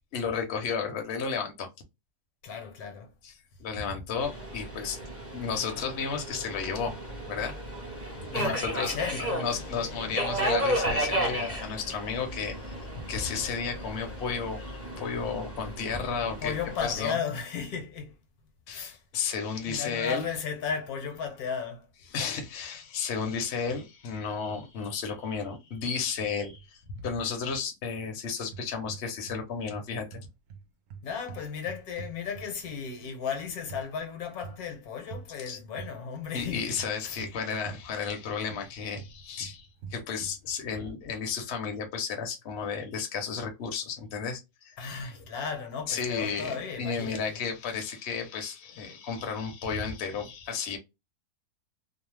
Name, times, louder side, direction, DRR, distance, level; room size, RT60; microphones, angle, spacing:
voice 1, 0.1-1.7 3.2-3.3 3.6-5.0 5.3-7.0 7.3-7.6 8.3-16.6 16.8-17.2 18.7-20.3 22.1-30.2 35.5-35.6 36.3-44.8 45.1-45.2 45.9-50.8, left 6 dB, 55° left, 0.8 m, -33 dB
voice 2, 2.4-3.1 8.3-9.4 16.4-18.2 18.7-19.0 19.7-21.9 31.0-36.7 37.0-37.2 44.8-47.4, left 6 dB, 75° left, 1.2 m, -35 dB
Subway metro underground, 4.2-17.0, right 1 dB, 15° right, 0.6 m, -34 dB
sound 1, 10.5-11.8 12.6-13.0 13.2-13.5 13.9-14.3 15.1-16.6 18.3-18.4 18.8-18.9 20.1-20.5 20.8-20.9 21.2-21.4, right 1 dB, 90° right, 0.3 m, -48 dB
sound 2, 23.7-24.2 24.5-24.9 26.2-27.2 28.4-29.4 29.7-32.7 33.7-33.9 34.4-34.7 35.1-35.3 35.8-36.0 36.8-38.2 38.5-40.4, right 6 dB, 65° right, 0.8 m, -45 dB
2.7 x 2.0 x 3.1 m
omnidirectional pair, 1.7 m